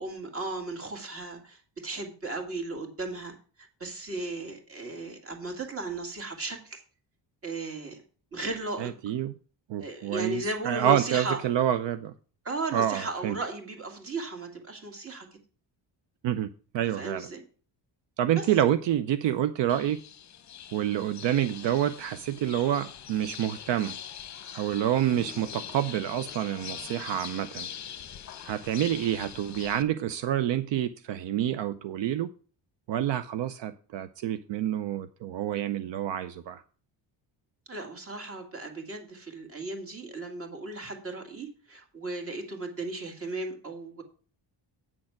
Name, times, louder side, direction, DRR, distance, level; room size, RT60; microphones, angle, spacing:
voice 1, 0.0-6.8 7.4-8.0 8.3-8.9 9.8-11.4 12.4-15.3 16.9-17.4 18.4-18.5 37.7-44.0, right 2 dB, 30° right, 4 dB, 2.1 m, -36 dB
voice 2, 8.8-9.3 9.7-12.1 12.7-13.4 16.2-16.5 16.7-17.3 18.2-20.0 20.7-24.0 24.5-27.7 28.4-32.3 32.9-36.6, right 11 dB, 75° right, 11 dB, 0.7 m, -28 dB
sound 1, 19.7-29.8, left 9 dB, 40° left, 0.7 m, -43 dB
8.9 x 6.5 x 5.8 m, 0.39 s
cardioid pair, 170°, 44 cm